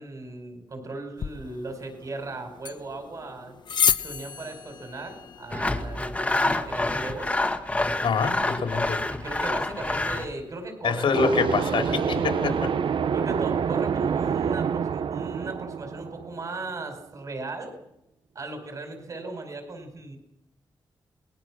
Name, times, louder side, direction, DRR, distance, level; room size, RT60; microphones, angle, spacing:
voice 1, 0.0-3.5 4.0-7.5 9.1-11.1 11.6-12.6 13.1-17.7 18.3-20.2, right 2 dB, 40° right, 5 dB, 5.1 m, -37 dB
sound 1, 1.2-7.2, left 7 dB, 60° left, 1.0 m, -32 dB
Sawing, 5.5-10.3, left 2 dB, 15° left, 1.4 m, -27 dB
voice 2, 8.0-9.0 10.8-12.6, left 5 dB, 80° left, 4 dB, 3.3 m, -25 dB
sound 2, 11.1-16.8, right 7 dB, 75° right, 0.8 m, -27 dB
28.5 x 20.5 x 6.2 m, 0.82 s
wide cardioid pair, 165°, 9 cm